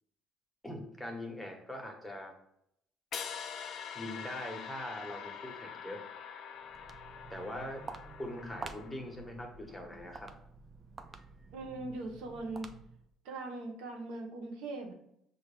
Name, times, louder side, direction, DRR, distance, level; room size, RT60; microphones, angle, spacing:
voice 1, 0.6-2.3 3.9-6.0 7.3-7.9 8.2-10.3, left 1 dB, 5° left, 1 dB, 1.1 m, -42 dB
sound 1, 3.1-9.2, left 7 dB, 60° left, 0.5 m, -44 dB
Walk footsteps, 6.6-13.1, right 4 dB, 35° right, 0.4 m, -49 dB
voice 2, 11.5-12.7 13.2-14.9, right 2 dB, 80° right, 2 dB, 0.9 m, -40 dB
5.7 x 2.6 x 3.4 m, 0.74 s
supercardioid pair, 80°, 0 cm